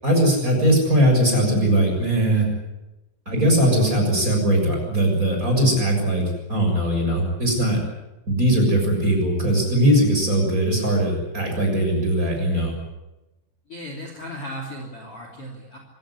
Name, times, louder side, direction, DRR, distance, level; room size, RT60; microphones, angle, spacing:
voice 1, 0.0-2.5 3.2-6.2 6.5-7.8 8.3-12.7, right 1 dB, 15° right, 1 dB, 6.8 m, -20 dB
voice 2, 13.7-15.8, equal, 35° left, 1 dB, 3.4 m, -36 dB
25.5 x 17.0 x 9.7 m, 1.0 s
omnidirectional pair, 5.5 m